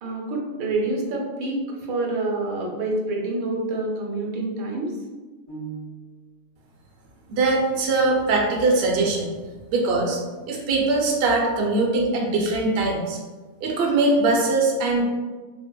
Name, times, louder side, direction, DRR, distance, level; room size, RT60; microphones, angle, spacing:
voice 1, 0.0-5.0, right 2 dB, 85° right, -1 dB, 1.0 m, -27 dB
sound 1, 5.5-6.5, right 5 dB, 85° left, 1.2 m, -38 dB
voice 2, 7.3-9.3 9.7-10.2 10.5-13.2 13.6-15.1, right 2 dB, 60° right, -2 dB, 0.7 m, -21 dB
3.4 x 2.0 x 2.2 m, 1.3 s
omnidirectional pair, 1.4 m